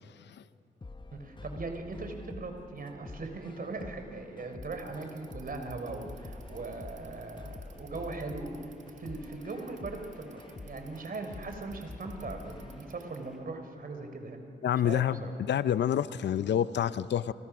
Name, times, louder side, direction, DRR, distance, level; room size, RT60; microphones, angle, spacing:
sound 1, 0.8-12.8, left 3 dB, 25° left, 1.0 m, -47 dB
voice 1, 1.1-8.7 9.0-14.4 14.8-15.3, right 3 dB, 50° right, 5 dB, 3.9 m, -39 dB
Bicycle, 4.5-13.3, right 10 dB, 80° right, 1.9 m, -59 dB
sound 2, 5.8-13.4, equal, ahead, 5.8 m, -58 dB
voice 2, 14.6-15.2 15.5-17.3, left 10 dB, 65° left, 16 dB, 0.6 m, -28 dB
28.5 x 26.0 x 6.2 m, 2.9 s
supercardioid pair, 55°, 19 cm